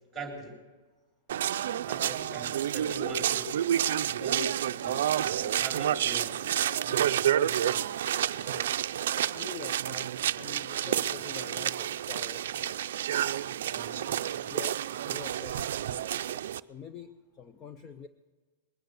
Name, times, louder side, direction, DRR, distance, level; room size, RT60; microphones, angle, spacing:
voice 1, 0.1-0.5 1.9-3.5 4.1-4.5 4.8-6.5 13.7-14.5, right 2 dB, 5° right, 1 dB, 3.6 m, -41 dB
sound 1, 1.3-16.6, right 10 dB, 65° right, 0.4 m, -30 dB
voice 2, 6.8-7.3 8.3-8.7 9.3-13.0 13.9-14.1 14.5-18.1, left 6 dB, 20° left, 10 dB, 0.5 m, -46 dB
21.0 x 9.4 x 6.5 m, 1.3 s
supercardioid pair, 165°, 0 cm